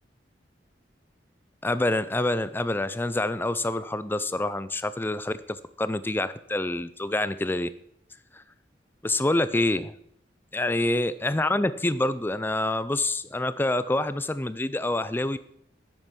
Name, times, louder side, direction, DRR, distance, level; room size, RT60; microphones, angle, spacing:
voice 1, 1.6-7.7 8.3-8.4 9.0-9.9 10.5-15.4, left 2 dB, 10° left, 14 dB, 0.4 m, -27 dB
9.9 x 7.8 x 5.3 m, 0.71 s
head